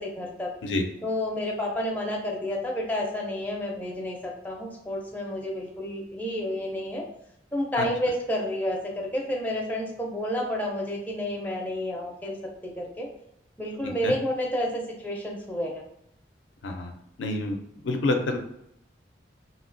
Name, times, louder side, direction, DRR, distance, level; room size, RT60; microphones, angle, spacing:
voice 1, 0.0-0.5 1.0-7.0 7.5-12.4 12.6-13.1 13.6-15.8, left 1 dB, 10° left, -2 dB, 0.4 m, -30 dB
voice 2, 17.2-17.6 17.8-18.4, left 2 dB, 80° left, 4 dB, 0.4 m, -27 dB
2.9 x 2.7 x 2.6 m, 0.78 s
head